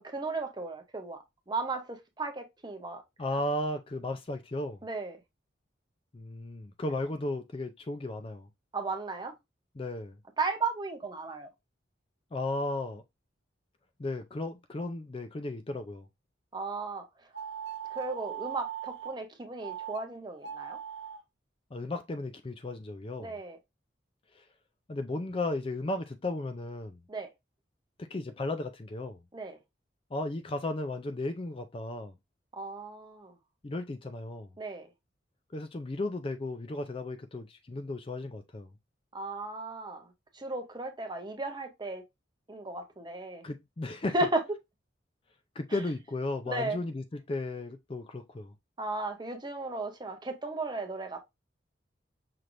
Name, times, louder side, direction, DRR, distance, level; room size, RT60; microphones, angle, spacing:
voice 1, 0.0-3.0 4.8-5.2 8.7-9.3 10.4-11.5 16.5-17.1 17.9-20.8 23.2-23.6 27.1-27.3 29.3-29.6 32.5-33.3 34.6-34.9 39.1-40.1 40.3-42.0 42.5-43.4 44.1-44.4 46.5-46.8 48.8-51.2, right 3 dB, 25° right, 0.7 m, -35 dB
voice 2, 3.2-4.8 6.1-8.5 9.8-10.2 12.3-13.0 14.0-16.1 21.7-23.3 24.4-24.5 24.9-27.0 28.0-29.2 30.1-32.1 33.6-34.5 35.5-38.7 43.4-44.1 45.6-48.5, left 2 dB, 30° left, 0.4 m, -35 dB
sound 1, 17.3-19.2 19.6-20.0 20.4-21.2, right 9 dB, 75° right, 0.8 m, -39 dB
5.9 x 3.3 x 2.5 m
head